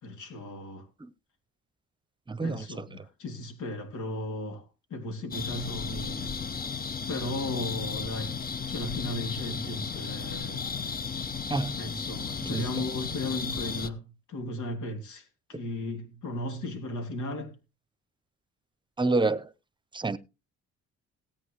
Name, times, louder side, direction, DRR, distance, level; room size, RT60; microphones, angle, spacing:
voice 1, 0.0-0.9 2.4-4.6 4.9-6.3 7.1-8.3 8.7-10.6 11.8-17.5, left 1 dB, 75° left, 3.1 m, -36 dB
voice 2, 2.3-2.8 11.5-11.8 12.4-12.6 19.0-19.5 19.9-20.2, right 3 dB, 15° right, 0.9 m, -28 dB
sound 1, 5.3-13.9, left 6 dB, 30° left, 0.9 m, -34 dB
17.0 x 8.9 x 3.2 m
cardioid pair, 90°, 30 cm